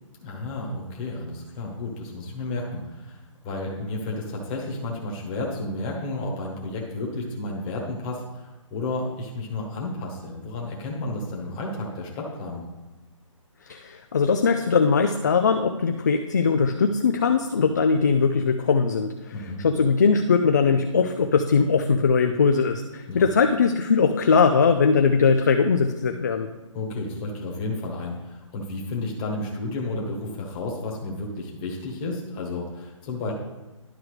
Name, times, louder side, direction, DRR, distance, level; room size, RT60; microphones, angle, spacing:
voice 1, 0.2-12.7 19.3-19.6 23.1-23.2 26.7-33.3, left 2 dB, 15° left, -2 dB, 1.2 m, -32 dB
voice 2, 13.7-19.3 19.6-26.5, left 5 dB, 35° left, 6 dB, 0.3 m, -20 dB
11.5 x 4.8 x 3.2 m, 1.1 s
hypercardioid pair, 165°, 17 cm